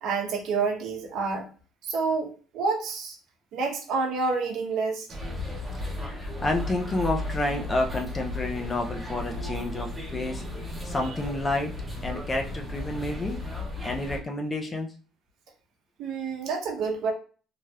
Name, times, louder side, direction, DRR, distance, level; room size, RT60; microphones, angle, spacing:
voice 1, 0.0-1.4 1.8-3.2 3.5-5.1 16.0-17.1, right 4 dB, 60° right, 2 dB, 0.8 m, -28 dB
sound 1, 5.1-14.2, left 2 dB, 5° right, 0.8 m, -35 dB
voice 2, 6.0-10.4 10.8-11.7 12.0-13.4 13.8-14.9, left 2 dB, 20° left, 3 dB, 0.4 m, -29 dB
3.2 x 2.7 x 2.3 m, 0.38 s
cardioid pair, 160°, 0 cm